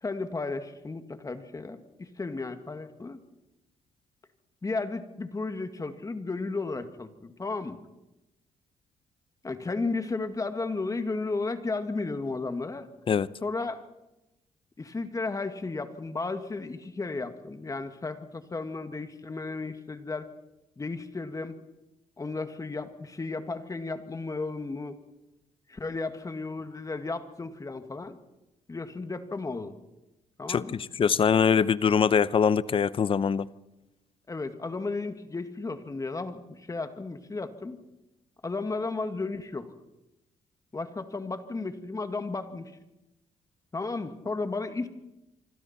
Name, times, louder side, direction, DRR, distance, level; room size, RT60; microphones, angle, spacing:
voice 1, 0.0-3.2 4.6-7.8 9.4-12.9 13.4-13.8 14.8-20.3 20.8-21.6 22.2-24.9 25.7-28.2 28.7-29.7 30.4-30.8 34.3-37.8 38.4-39.7 40.7-42.7 43.7-44.9, left 3 dB, 25° left, 2.0 m, -34 dB
voice 2, 30.5-33.5, left 7 dB, 45° left, 0.7 m, -23 dB
25.5 x 25.0 x 4.4 m
supercardioid pair, 60°, 12 cm